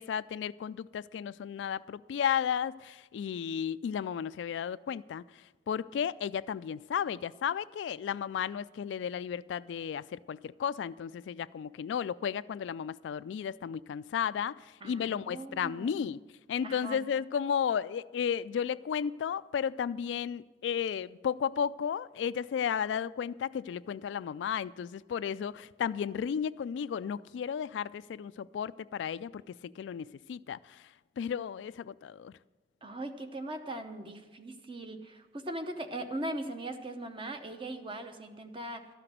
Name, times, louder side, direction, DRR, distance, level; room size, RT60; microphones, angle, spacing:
voice 1, 0.0-5.2 5.7-16.2 16.5-30.8 31.2-32.3, left 8 dB, 80° left, 0.3 m, -33 dB
voice 2, 14.8-16.0 16.6-17.0 32.8-38.8, right 1 dB, 30° right, 0.9 m, -40 dB
13.0 x 5.9 x 9.0 m
head